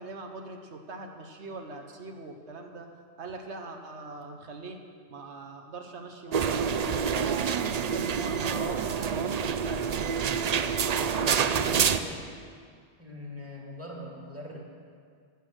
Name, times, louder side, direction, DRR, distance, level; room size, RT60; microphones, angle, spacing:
voice 1, 0.0-2.9 3.2-4.8 5.1-7.0 7.5-10.1, right 3 dB, 85° right, 4 dB, 1.3 m, -41 dB
sound 1, 6.3-12.0, right 7 dB, 50° right, 0.5 m, -27 dB
voice 2, 11.4-12.2 13.0-14.6, equal, 10° right, -2 dB, 2.0 m, -42 dB
16.0 x 8.4 x 6.3 m, 2.1 s
omnidirectional pair, 1.1 m